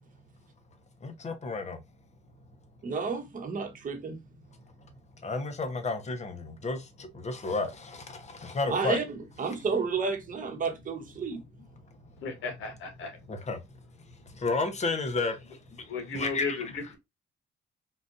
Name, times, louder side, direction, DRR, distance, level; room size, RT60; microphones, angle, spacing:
voice 1, 1.0-1.8 5.2-9.0 13.3-13.6 14.3-16.6, left 3 dB, 35° left, 0.9 m, -32 dB
voice 2, 2.8-4.2 8.7-11.4, right 5 dB, 45° right, 1.0 m, -31 dB
voice 3, 12.2-13.2 15.9-17.0, left 4 dB, 85° left, 1.2 m, -35 dB
3.9 x 2.5 x 2.5 m
cardioid pair, 90°, 20 cm